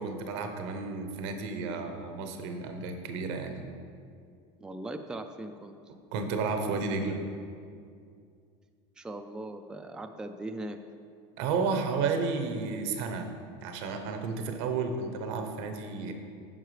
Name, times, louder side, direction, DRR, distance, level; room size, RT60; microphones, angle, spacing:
voice 1, 0.0-3.6 6.1-7.2 11.4-13.3 13.6-16.1, right 4 dB, 75° right, 6 dB, 0.8 m, -32 dB
voice 2, 4.6-5.8 9.0-10.8, right 2 dB, 5° right, 6 dB, 0.3 m, -39 dB
9.2 x 5.6 x 3.2 m, 2.3 s
supercardioid pair, 115°, 14 cm